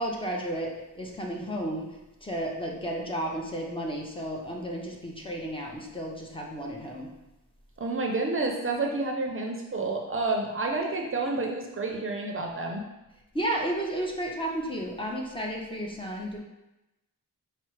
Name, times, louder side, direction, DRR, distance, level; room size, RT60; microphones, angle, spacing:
voice 1, 0.0-1.9 2.2-7.1 13.3-16.4, right 1 dB, 15° left, -2 dB, 0.6 m, -32 dB
voice 2, 7.8-12.8, right 3 dB, 40° right, 1 dB, 0.5 m, -29 dB
4.4 x 2.0 x 4.5 m, 0.98 s
wide cardioid pair, 95°, 32 cm